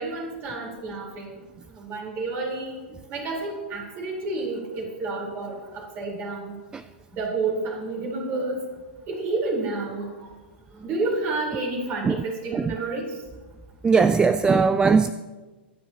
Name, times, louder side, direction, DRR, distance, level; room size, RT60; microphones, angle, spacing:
voice 1, 0.0-1.4 1.7-2.7 3.1-6.5 7.1-8.6 9.1-10.3 10.7-13.1, right 3 dB, 35° right, -1 dB, 4.1 m, -30 dB
voice 2, 13.8-15.1, right 5 dB, 15° right, 13 dB, 0.3 m, -19 dB
25.0 x 9.7 x 2.9 m, 1.3 s
hypercardioid pair, 110°, 6 cm